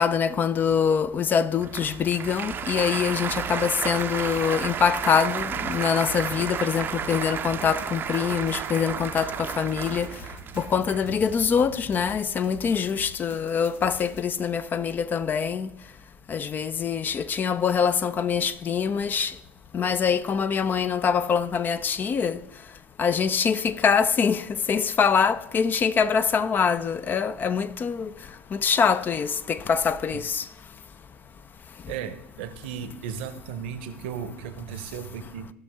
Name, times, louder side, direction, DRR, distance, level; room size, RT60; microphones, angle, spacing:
voice 1, 0.0-10.1 10.6-15.7 16.3-19.3 19.7-22.4 23.0-28.1 28.5-30.4, left 6 dB, 30° left, 0.4 m, -24 dB
Applause, 1.6-12.2, right 8 dB, 30° right, 0.5 m, -33 dB
sound 1, 2.7-14.3, left 3 dB, 70° left, 1.0 m, -46 dB
voice 2, 31.9-35.5, right 7 dB, 60° right, 0.8 m, -35 dB
16.0 x 6.0 x 3.5 m
figure-of-eight pair, 65°, 7 cm